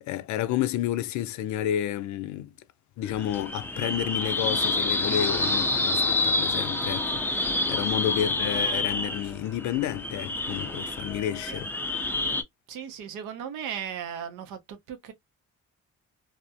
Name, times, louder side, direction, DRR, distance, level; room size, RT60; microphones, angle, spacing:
voice 1, 0.0-2.5 3.0-11.7, left 11 dB, 70° left, 0.4 m, -30 dB
sound 1, 3.0-12.4, left 2 dB, 5° left, 0.4 m, -28 dB
voice 2, 12.7-15.1, right 8 dB, 85° right, 0.6 m, -37 dB
2.4 x 2.0 x 2.6 m
cardioid pair, 90°, 30 cm